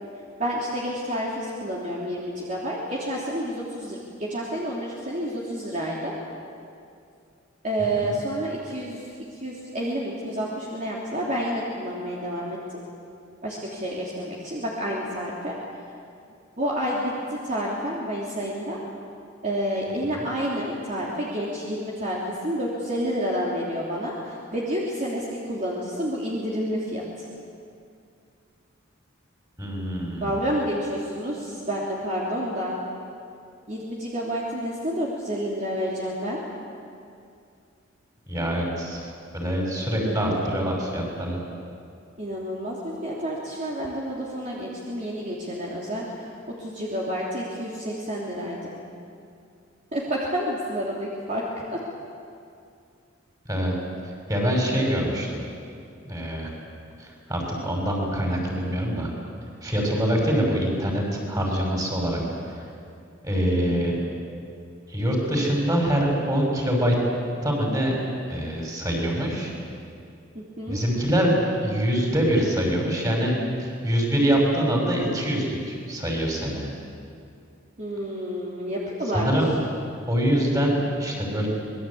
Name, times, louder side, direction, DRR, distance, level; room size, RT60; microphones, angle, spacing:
voice 1, 0.4-6.1 7.6-9.1 9.3-12.6 13.4-15.5 16.6-18.8 19.4-27.3 30.2-32.8 33.7-36.4 40.0-40.4 42.2-46.3 46.6-48.7 49.9-51.4 51.7-51.8 70.3-70.8 77.8-79.3, equal, 35° right, -5 dB, 3.2 m, -29 dB
voice 2, 29.6-30.3 38.3-39.1 39.3-41.4 53.5-53.7 54.3-55.4 56.0-56.5 57.0-59.1 59.6-62.2 62.5-62.6 63.2-64.0 64.9-67.0 67.4-67.9 68.3-69.5 70.7-71.3 71.6-73.3 73.6-76.7 79.1-79.5 80.1-81.5, equal, 20° right, 0 dB, 5.9 m, -24 dB
26.5 x 21.5 x 8.6 m, 2.4 s
head